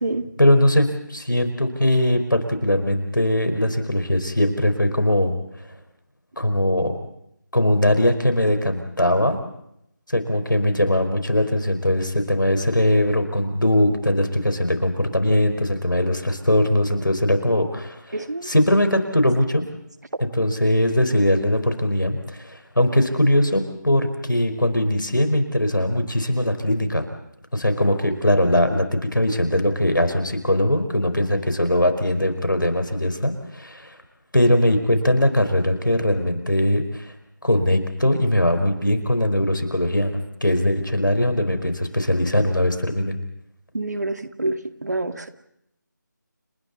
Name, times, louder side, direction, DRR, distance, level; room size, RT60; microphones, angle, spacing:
voice 1, 0.4-5.4 6.4-6.9 7.5-9.4 10.1-19.6 20.2-27.1 27.5-33.9 34.3-37.1 37.4-43.2, left 1 dB, 80° left, 7 dB, 4.8 m, -20 dB
voice 2, 18.1-18.5 43.7-45.3, right 2 dB, 60° right, 8 dB, 2.0 m, -27 dB
30.0 x 29.5 x 4.2 m, 0.77 s
figure-of-eight pair, 160°, 11 cm